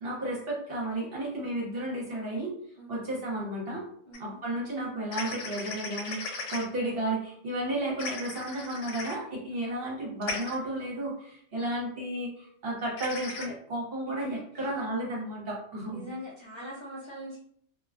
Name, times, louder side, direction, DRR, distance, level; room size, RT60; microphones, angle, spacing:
voice 1, 0.0-2.5 2.9-3.8 4.2-16.0, right 1 dB, 55° right, -4 dB, 1.0 m, -33 dB
sound 1, 4.1-4.2 5.1-6.6 8.0-9.2 10.2-10.5 13.0-13.4, left 3 dB, 80° left, 0.9 m, -36 dB
voice 2, 4.1-4.4 9.5-9.7 14.1-14.3 14.5-14.7 15.9-17.4, equal, 40° left, -7 dB, 0.4 m, -42 dB
2.4 x 2.2 x 2.4 m, 0.62 s
omnidirectional pair, 1.3 m